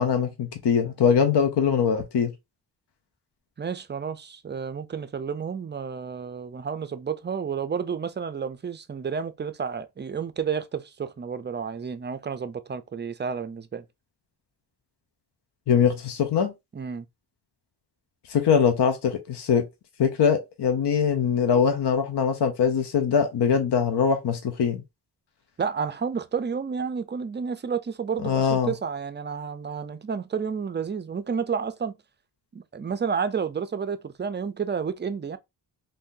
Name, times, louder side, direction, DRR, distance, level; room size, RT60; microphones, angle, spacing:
voice 1, 0.0-2.3 15.7-16.5 18.3-19.7 20.0-24.8 28.2-28.7, left 7 dB, 80° left, 0.7 m, -22 dB
voice 2, 3.6-13.8 16.7-17.1 25.6-32.0 32.5-35.4, right 6 dB, 30° right, 0.4 m, -31 dB
2.6 x 2.6 x 3.7 m
wide cardioid pair, 85°, 41 cm